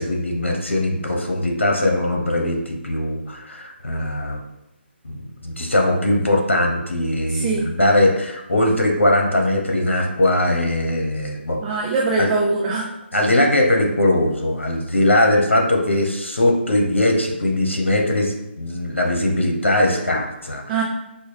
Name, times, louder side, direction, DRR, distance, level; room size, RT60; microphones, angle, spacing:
voice 1, 0.0-4.4 5.0-11.8 12.2-12.3 13.1-20.8, left 1 dB, 90° left, 1 dB, 0.8 m, -20 dB
voice 2, 7.3-7.7 11.6-12.9 20.7-20.8, right 3 dB, 20° right, -2 dB, 0.4 m, -22 dB
4.1 x 2.2 x 3.2 m, 0.92 s
figure-of-eight pair, 150°, 6 cm